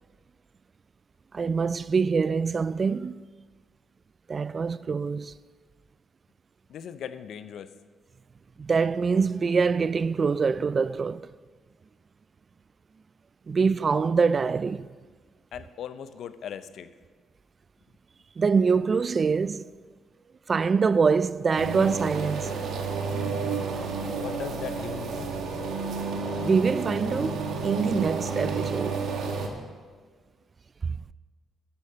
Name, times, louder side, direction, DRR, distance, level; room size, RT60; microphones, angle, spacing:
voice 1, 1.3-3.2 4.3-5.3 8.6-11.3 13.5-14.9 18.4-19.7 20.5-22.5 26.4-29.0 30.8-31.1, right 5 dB, 40° right, 0.3 m, -24 dB
voice 2, 6.7-7.7 15.5-16.9 24.2-25.4, left 8 dB, 70° left, 0.6 m, -39 dB
sound 1, 21.5-29.5, right 4 dB, 70° right, 1.5 m, -31 dB
10.5 x 10.0 x 5.6 m
cardioid pair, 90°, 0 cm